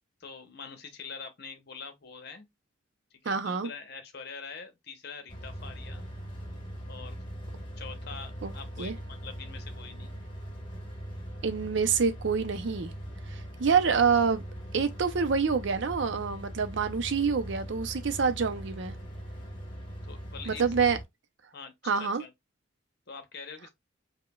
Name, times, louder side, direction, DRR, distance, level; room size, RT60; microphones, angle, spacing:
voice 1, 0.2-2.5 3.2-6.0 6.9-7.2 7.8-10.1 20.0-20.6 21.5-22.3 23.1-23.7, left 5 dB, 55° left, 0.8 m, -44 dB
voice 2, 3.3-3.7 8.4-8.5 8.8-8.9 11.4-12.9 13.3-14.4 14.7-18.9 20.5-21.0 21.8-22.2, right 5 dB, 60° right, 0.5 m, -27 dB
sound 1, 5.3-21.0, equal, 25° left, 1.2 m, -41 dB
4.9 x 2.2 x 2.2 m
head